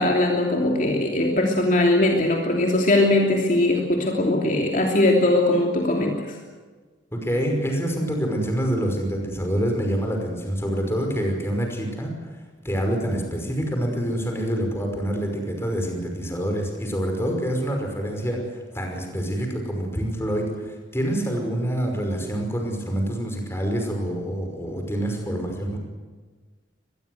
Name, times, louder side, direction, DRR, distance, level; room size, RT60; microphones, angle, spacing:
voice 1, 0.0-6.4, left 1 dB, 45° left, 0 dB, 3.0 m, -20 dB
voice 2, 7.1-12.3 12.6-25.8, equal, 15° left, 2 dB, 5.5 m, -26 dB
25.0 x 21.0 x 8.0 m, 1.4 s
head